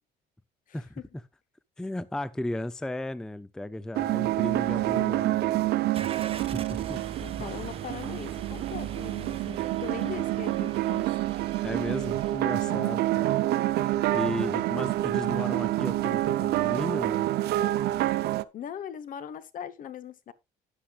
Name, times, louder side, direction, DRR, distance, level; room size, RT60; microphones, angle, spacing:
voice 1, 0.7-1.1 4.9-5.2 7.2-11.1 12.7-13.0 18.5-20.3, left 9 dB, 55° left, 0.9 m, -40 dB
voice 2, 1.8-5.7 6.3-7.0 7.4-7.5 11.6-13.4 14.1-17.3, left 1 dB, 5° left, 0.4 m, -35 dB
sound 1, 3.9-18.4, right 15 dB, 75° right, 0.6 m, -27 dB
Car / Engine starting, 5.9-12.4, right 6 dB, 35° right, 1.2 m, -41 dB
11.5 x 9.9 x 2.4 m
cardioid pair, 110°, 17 cm